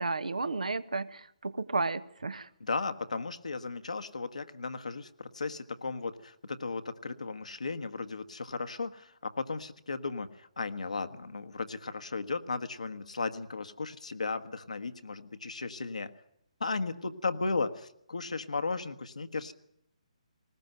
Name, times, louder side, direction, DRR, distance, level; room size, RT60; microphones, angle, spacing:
voice 1, 0.0-2.5, right 3 dB, 75° right, 15 dB, 1.1 m, -33 dB
voice 2, 2.6-16.1 16.6-19.5, left 3 dB, 75° left, 10 dB, 1.4 m, -35 dB
19.5 x 18.5 x 9.2 m, 0.73 s
figure-of-eight pair, 140°, 4 cm